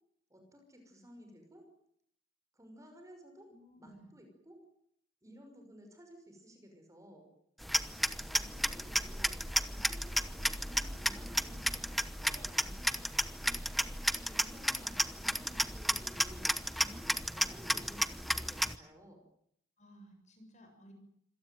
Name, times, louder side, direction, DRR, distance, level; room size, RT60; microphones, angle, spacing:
voice 1, 0.3-1.7 2.5-3.5 3.8-4.6 5.2-7.3 8.3-13.3 14.2-19.2, equal, 15° right, 4 dB, 5.8 m, -55 dB
voice 2, 3.5-4.1 7.9-8.3 19.8-20.9, equal, 35° left, 5 dB, 7.3 m, -58 dB
sound 1, 7.6-18.8, equal, ahead, 0.9 m, -33 dB
26.0 x 18.0 x 9.4 m, 0.70 s
head